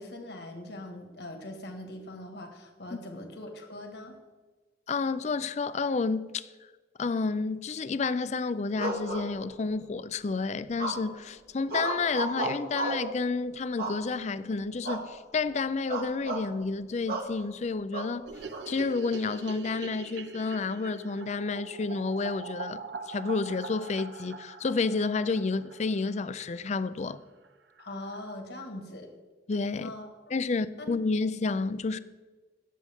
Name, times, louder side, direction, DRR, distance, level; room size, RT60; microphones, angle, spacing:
voice 1, 0.0-4.2 27.8-29.1 29.8-30.4 30.8-30.9, left 1 dB, 65° left, 1.7 m, -42 dB
voice 2, 4.9-6.5 7.0-18.3 18.7-27.2 29.5-29.9 30.3-32.0, left 4 dB, 40° left, 0.4 m, -30 dB
sound 1, 8.8-9.8 10.8-11.3 11.7-13.1 13.8-14.4 14.8-15.1 15.4-15.6 15.9-16.5 17.1-17.3 17.9-18.6, right 2 dB, 60° right, 1.5 m, -33 dB
sound 2, 18.3-26.5 26.7-26.8 27.1-27.2 27.4-27.5 27.8-28.3, right 5 dB, 85° right, 0.8 m, -43 dB
18.5 x 7.6 x 3.6 m
head